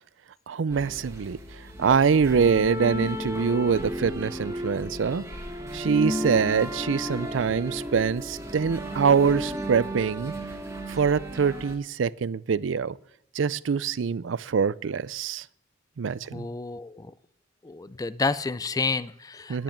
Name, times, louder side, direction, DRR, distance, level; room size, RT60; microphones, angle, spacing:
voice 1, 0.5-1.4 1.8-5.2 5.7-10.3 10.9-13.0 13.3-15.4 16.0-16.5 19.5-19.6, right 6 dB, 75° right, 0.4 m, -24 dB
sound 1, 0.7-11.8, equal, 15° right, 1.7 m, -34 dB
voice 2, 16.3-17.1 17.6-19.6, left 4 dB, 20° left, 0.4 m, -30 dB
10.5 x 9.0 x 8.5 m
head